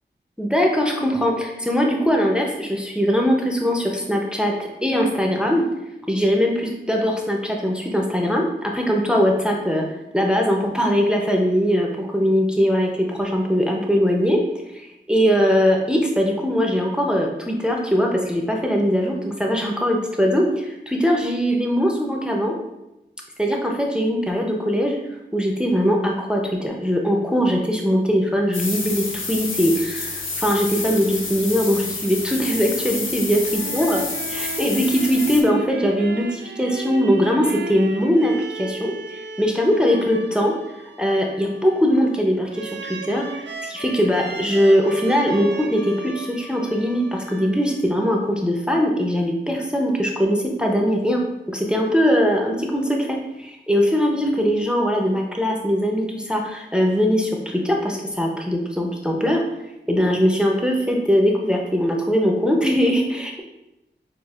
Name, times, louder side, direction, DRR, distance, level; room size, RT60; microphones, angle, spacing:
voice 1, 0.4-4.5 4.8-5.7 6.1-9.8 10.1-14.4 14.7-22.5 23.4-25.0 25.3-34.0 34.3-40.5 41.0-51.2 51.5-59.4 59.9-63.4, equal, 5° right, 0 dB, 0.5 m, -21 dB
sound 1, 28.5-35.4, left 3 dB, 90° left, 0.6 m, -29 dB
sound 2, 33.3-47.9, right 3 dB, 70° right, 0.4 m, -36 dB
5.8 x 2.4 x 2.4 m, 0.93 s
wide cardioid pair, 55°, 20 cm